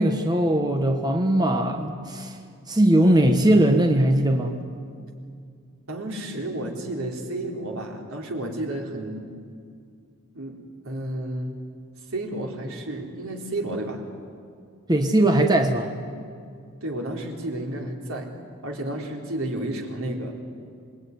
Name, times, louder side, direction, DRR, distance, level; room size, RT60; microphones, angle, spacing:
voice 1, 0.0-2.3 2.7-4.5 14.9-15.9, right 1 dB, 20° right, 4 dB, 1.5 m, -20 dB
voice 2, 5.9-9.3 10.3-10.6 10.8-11.6 12.1-14.0 16.8-18.3 18.6-20.3, right 1 dB, 80° right, 1 dB, 4.0 m, -31 dB
27.0 x 22.0 x 9.6 m, 2.2 s
head